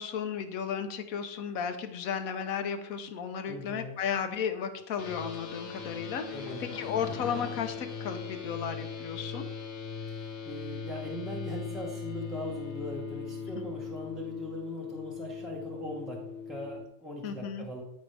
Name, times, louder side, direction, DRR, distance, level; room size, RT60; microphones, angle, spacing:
voice 1, 0.0-6.2 6.6-9.5 13.5-13.7 17.2-17.7, left 7 dB, 65° left, 8 dB, 1.2 m, -34 dB
voice 2, 3.5-4.0 6.3-6.6 10.2-16.2 16.5-17.8, left 1 dB, ahead, -4 dB, 1.0 m, -40 dB
sound 1, 5.0-16.8, left 5 dB, 50° left, 1.2 m, -40 dB
sound 2, 5.3-9.0 9.3-9.4, left 6 dB, 85° left, 1.3 m, -46 dB
13.5 x 4.7 x 3.4 m, 0.88 s
omnidirectional pair, 1.7 m